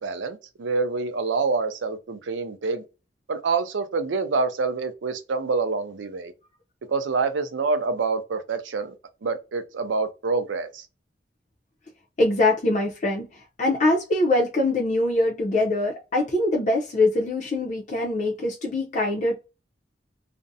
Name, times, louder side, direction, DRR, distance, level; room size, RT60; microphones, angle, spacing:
voice 1, 0.0-2.8 3.3-6.3 6.9-8.9 9.2-10.9, right 4 dB, 85° right, 0.5 m, -26 dB
voice 2, 12.2-13.3 13.6-19.4, left 2 dB, 40° left, 0.5 m, -23 dB
2.5 x 2.0 x 2.6 m
head